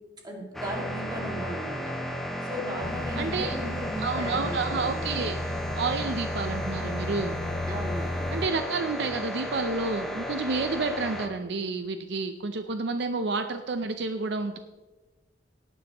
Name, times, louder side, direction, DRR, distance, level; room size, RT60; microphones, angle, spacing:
voice 1, 0.2-1.9 2.4-5.4 7.7-8.3, equal, 25° right, 0 dB, 2.2 m, -36 dB
sound 1, 0.5-11.3, equal, ahead, 1.2 m, -34 dB
sound 2, 2.8-8.5, left 2 dB, 20° left, 0.4 m, -34 dB
voice 2, 3.2-3.6 4.0-5.4 5.7-7.4 8.3-14.6, right 3 dB, 65° right, 8 dB, 0.6 m, -30 dB
18.0 x 9.8 x 3.0 m, 1.2 s
head